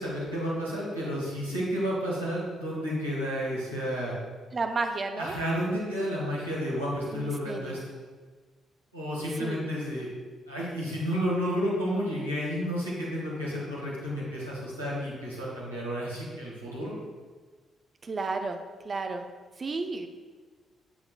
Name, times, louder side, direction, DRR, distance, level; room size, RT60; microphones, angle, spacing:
voice 1, 0.0-4.1 5.2-7.8 8.9-10.1 10.5-17.0, equal, 90° right, -8 dB, 1.6 m, -31 dB
voice 2, 4.5-5.4 7.1-7.8 9.4-9.7 18.0-19.3 19.6-20.1, right 3 dB, 35° right, 6 dB, 0.6 m, -32 dB
7.7 x 6.7 x 2.3 m, 1.4 s
figure-of-eight pair, 40°, 0 cm